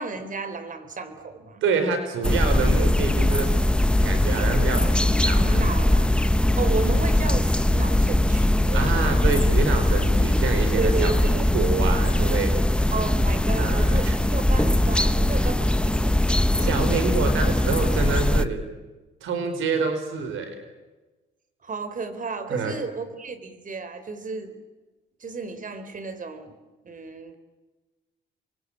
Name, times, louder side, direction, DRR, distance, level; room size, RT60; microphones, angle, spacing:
voice 1, 0.0-1.6 5.4-6.1 6.6-9.2 10.8-11.5 12.9-17.1 21.6-24.6 25.2-26.5 26.8-27.4, right 4 dB, 40° right, 11 dB, 3.9 m, -33 dB
voice 2, 1.6-3.5 4.0-5.8 8.7-12.6 13.6-14.2 16.5-18.6 19.2-20.5 22.5-22.7, right 4 dB, 80° right, 8 dB, 4.4 m, -27 dB
sound 1, 2.2-18.5, left 1 dB, 5° left, 1.1 m, -21 dB
29.0 x 23.5 x 8.7 m, 1.2 s
cardioid pair, 90°, 20 cm